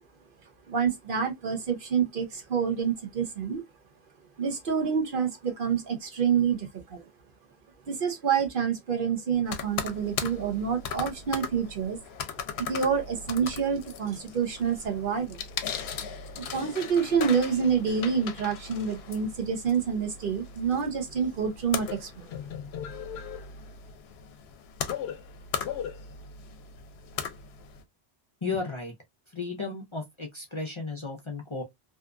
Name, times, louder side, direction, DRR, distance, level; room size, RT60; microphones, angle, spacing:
voice 1, 0.7-3.6 4.4-7.0 7.9-12.0 12.6-15.4 16.4-22.3, right 7 dB, 60° right, 0.8 m, -27 dB
sound 1, 9.5-27.8, left 7 dB, 75° left, 0.8 m, -38 dB
voice 2, 28.4-28.9 29.3-31.6, left 4 dB, 35° left, 0.6 m, -34 dB
2.7 x 2.3 x 2.3 m
omnidirectional pair, 1.1 m